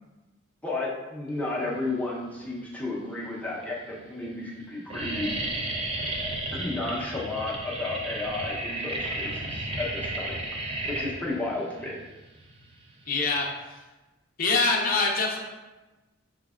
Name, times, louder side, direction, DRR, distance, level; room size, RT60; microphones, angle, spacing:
voice 1, 0.6-5.3 6.5-10.4 10.9-12.0, left 2 dB, 5° left, -6 dB, 0.7 m, -32 dB
sound 1, 2.3-2.9 3.5-3.6 3.9-4.3 4.5-13.5, right 1 dB, 30° right, 0.5 m, -33 dB
voice 2, 13.1-13.8 14.4-15.4, left 3 dB, 45° left, -1 dB, 0.6 m, -25 dB
5.0 x 3.3 x 2.4 m, 1.1 s
head